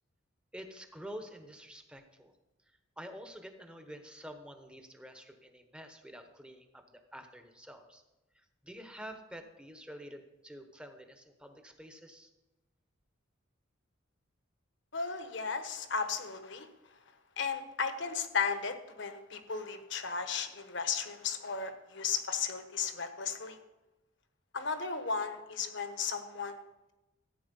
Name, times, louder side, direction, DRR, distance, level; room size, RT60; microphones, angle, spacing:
voice 1, 0.5-2.3 3.0-8.0 8.3-12.3, equal, 5° right, 6 dB, 1.0 m, -48 dB
voice 2, 14.9-16.7 17.4-23.6 24.5-26.6, left 5 dB, 60° left, 8 dB, 1.2 m, -35 dB
14.5 x 9.0 x 5.4 m, 1.0 s
head